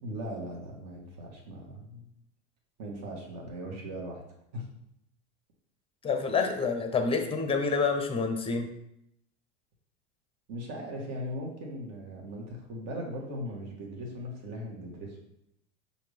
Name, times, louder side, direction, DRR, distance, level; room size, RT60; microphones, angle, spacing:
voice 1, 0.0-2.1 2.8-4.2 4.5-4.7 10.5-15.2, equal, 50° right, -1 dB, 1.6 m, -39 dB
voice 2, 6.0-8.7, left 4 dB, 15° left, 5 dB, 0.7 m, -28 dB
5.7 x 2.7 x 3.3 m, 0.77 s
hypercardioid pair, 105°, 36 cm